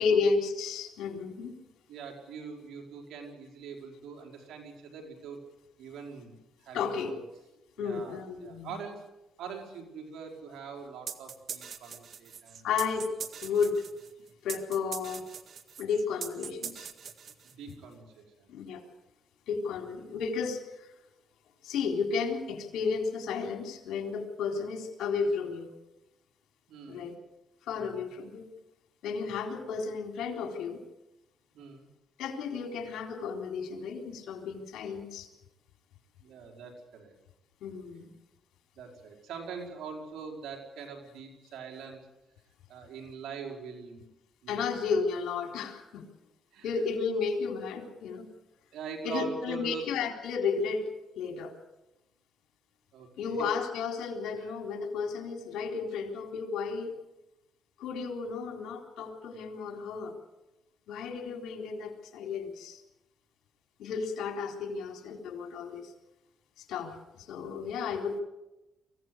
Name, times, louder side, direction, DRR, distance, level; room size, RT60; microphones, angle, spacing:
voice 1, 0.0-1.6 6.7-7.1 7.8-8.8 12.6-13.1 13.4-13.8 14.4-15.3 15.8-16.9 18.5-18.8 19.5-20.9 21.6-25.7 26.9-27.1 27.6-28.4 29.0-30.8 32.2-35.3 37.6-38.1 44.5-46.1 46.6-48.3 49.0-50.9 51.2-51.5 53.2-56.9 57.8-60.1 60.9-62.8 63.8-65.9 66.6-68.2, left 5 dB, 80° left, 4 dB, 3.9 m, -33 dB
voice 2, 1.9-5.4 5.8-7.2 7.8-9.1 9.4-12.7 17.4-18.5 26.7-27.1 27.8-28.0 29.2-29.4 31.5-31.9 36.2-37.2 37.7-38.1 38.7-42.1 42.7-44.1 44.4-44.6 46.5-46.7 48.7-49.9 52.9-53.5 54.4-54.5, right 6 dB, 80° right, 3 dB, 5.2 m, -43 dB
sound 1, 11.1-17.8, right 7 dB, 55° right, 1.9 m, -42 dB
24.5 x 16.5 x 8.1 m, 0.95 s
cardioid pair, 90°, 0 cm